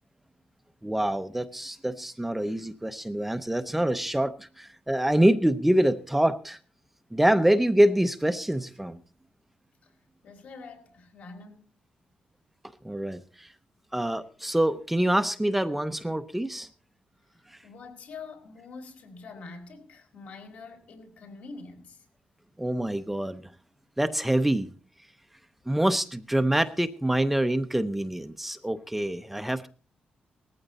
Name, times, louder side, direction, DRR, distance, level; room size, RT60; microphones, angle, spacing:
voice 1, 0.8-6.6 7.1-9.0 12.8-13.5 13.9-16.7 22.6-23.4 24.0-24.7 25.7-29.7, right 1 dB, 5° right, 0.6 m, -25 dB
voice 2, 10.2-11.7 14.0-14.1 17.6-22.1, left 4 dB, 70° left, 5.1 m, -45 dB
19.0 x 14.5 x 4.1 m
wide cardioid pair, 175°, 3 cm